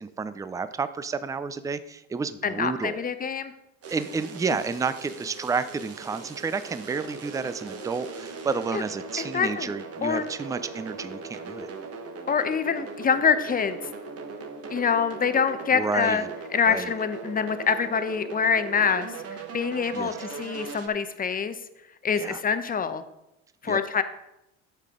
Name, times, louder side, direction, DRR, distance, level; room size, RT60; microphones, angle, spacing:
voice 1, 0.0-3.0 3.9-11.7 15.7-16.3 16.7-16.9 19.9-20.2 22.2-22.4 23.7-23.8, right 4 dB, 10° right, 13 dB, 0.4 m, -30 dB
voice 2, 2.4-3.5 8.7-8.8 9.2-9.7 10.0-10.2 12.3-13.8 14.7-16.2 16.5-21.6 22.0-23.0 23.6-24.0, left 6 dB, 20° left, 11 dB, 0.7 m, -25 dB
sound 1, 3.8-20.9, right 4 dB, 40° right, 1.3 m, -39 dB
9.7 x 6.6 x 3.7 m, 0.87 s
hypercardioid pair, 80°, 39 cm